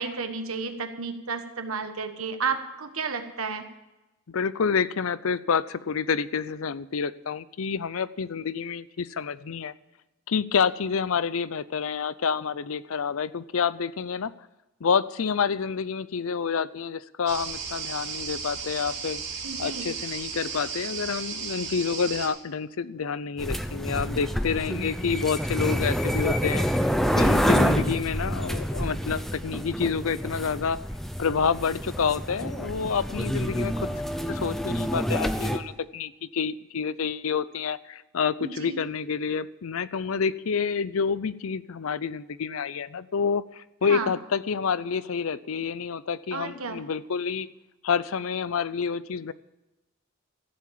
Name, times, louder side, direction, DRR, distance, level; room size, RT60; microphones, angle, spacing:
voice 1, 0.0-3.6 19.4-19.9 27.5-27.7 38.4-38.8 43.9-44.1 46.3-46.8, right 5 dB, 80° right, 7 dB, 1.4 m, -32 dB
voice 2, 4.3-9.7 10.3-14.3 14.8-19.2 19.6-26.7 27.1-30.8 31.2-33.9 34.3-47.5 47.8-49.3, left 6 dB, 75° left, 17 dB, 0.5 m, -28 dB
sound 1, 17.3-22.3, right 6 dB, 50° right, 3.5 m, -35 dB
sound 2, 23.4-35.6, equal, ahead, 0.7 m, -27 dB
14.5 x 7.5 x 8.6 m, 1.0 s
head